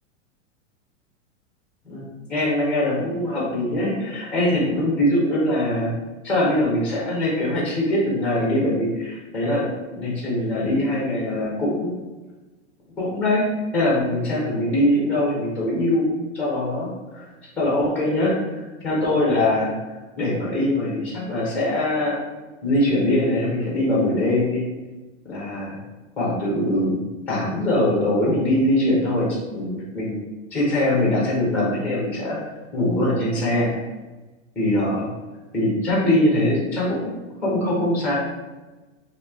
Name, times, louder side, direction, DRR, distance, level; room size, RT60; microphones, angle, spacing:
voice 1, 1.8-5.9 6.2-11.9 13.0-13.4 13.7-16.1 16.3-16.9 17.1-17.3 17.6-19.7 20.1-22.2 22.6-24.6 25.3-25.8 26.2-27.0 27.3-30.2 30.5-32.4 32.7-33.7 34.6-35.1 35.5-37.1 37.4-38.1, left 1 dB, 5° left, -4 dB, 0.7 m, -22 dB
3.0 x 2.7 x 3.5 m, 1.2 s
supercardioid pair, 165°, 38 cm